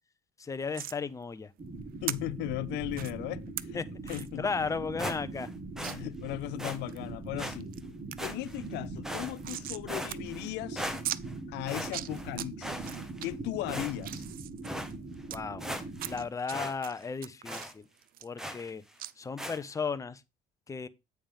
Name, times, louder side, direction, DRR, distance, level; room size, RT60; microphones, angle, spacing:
voice 1, 0.4-1.5 3.7-5.5 15.3-15.6 16.1-17.8 18.2-18.8 19.2-20.2 20.7-20.9, left 5 dB, 20° left, 0.6 m, -35 dB
sound 1, 0.7-1.0 2.1-2.2 2.9-3.1 3.6-3.7 4.1-4.3 4.7-4.8 5.0-5.1 5.8-5.9 6.5-7.0 7.4-7.8 8.1-8.2 8.5-9.8 10.1-10.2 10.5-10.6 11.0-11.2 11.7-12.5 12.8-13.3 13.7-15.4 16.0-16.5 16.8-18.7 19.0-19.1, right 13 dB, 60° right, 0.4 m, -39 dB
sound 2, 1.6-16.3, right 3 dB, 35° right, 2.0 m, -42 dB
voice 2, 2.0-3.8 4.1-4.5 5.8-7.7 8.2-10.9 11.5-12.9 13.2-14.2, left 18 dB, 85° left, 0.5 m, -37 dB
sound 3, 5.0-5.5 5.8-6.0 6.6-6.8 7.4-7.6 8.2-8.6 9.0-9.6 9.9-10.5 10.8-11.3 11.7-12.3 12.6-13.3 13.7-14.2 14.6-14.9 15.3-15.4 15.6-16.2 16.5-16.7 17.0-17.1 17.4-17.7 18.4-18.7 19.4-19.6, equal, 5° right, 1.1 m, -38 dB
8.6 x 3.5 x 5.4 m
cardioid pair, 110°, 17 cm